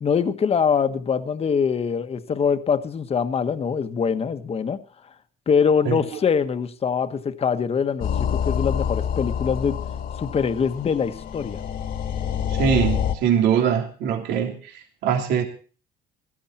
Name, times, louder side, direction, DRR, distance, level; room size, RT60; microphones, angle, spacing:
voice 1, 0.0-5.1 5.5-9.8 10.2-11.6, left 6 dB, 35° left, 1.4 m, -23 dB
sound 1, 8.0-13.2, left 8 dB, 60° left, 1.9 m, -27 dB
voice 2, 12.5-15.4, right 8 dB, 85° right, 3.0 m, -22 dB
17.5 x 14.0 x 4.4 m
cardioid pair, 110°, 17 cm